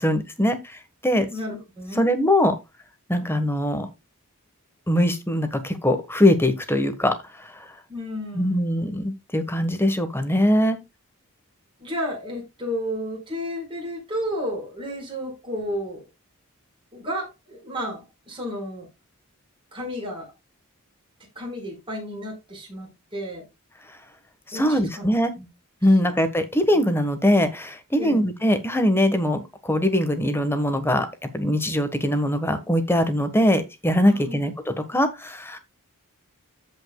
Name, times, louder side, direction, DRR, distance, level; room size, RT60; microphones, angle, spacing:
voice 1, 0.0-1.3 2.0-2.5 3.1-3.9 4.9-7.7 8.3-10.8 24.5-25.3 25.8-31.1 31.3-35.6, left 1 dB, 10° left, 1.3 m, -22 dB
voice 2, 1.3-2.1 7.9-8.8 11.8-16.0 16.9-18.9 19.7-20.3 21.3-23.4 24.5-25.1 25.4-25.5 28.0-28.2 34.1-34.4, equal, 25° right, 5.0 m, -32 dB
14.5 x 5.3 x 2.3 m
head